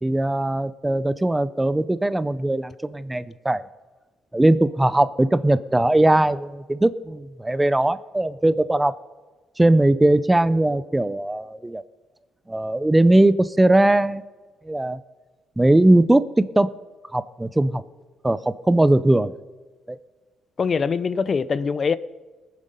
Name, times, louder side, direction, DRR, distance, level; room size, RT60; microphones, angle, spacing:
voice 1, 0.0-3.7 4.3-8.9 9.6-11.8 12.5-14.2 14.7-15.0 15.6-16.7 17.1-17.8 18.2-19.3 19.9-20.0, right 1 dB, 10° right, 0.5 m, -19 dB
voice 2, 20.6-22.0, left 5 dB, 40° left, 0.5 m, -23 dB
20.0 x 7.5 x 5.3 m
cardioid pair, 90°, 0 cm